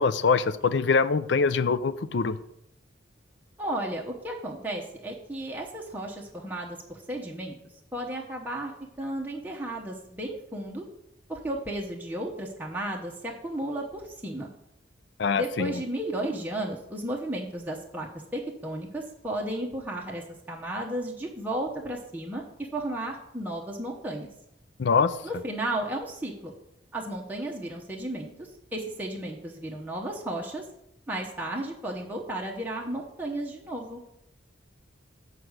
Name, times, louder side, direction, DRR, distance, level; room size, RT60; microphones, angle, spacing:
voice 1, 0.0-2.4 15.2-15.8 24.8-25.1, left 5 dB, 60° left, 14 dB, 0.4 m, -24 dB
voice 2, 3.6-7.6 7.9-10.8 11.3-14.5 15.3-20.2 20.5-22.4 22.7-24.3 25.2-26.5 26.9-30.6 31.1-34.0, right 1 dB, 10° right, -2 dB, 0.9 m, -34 dB
7.7 x 4.7 x 6.5 m, 0.80 s
head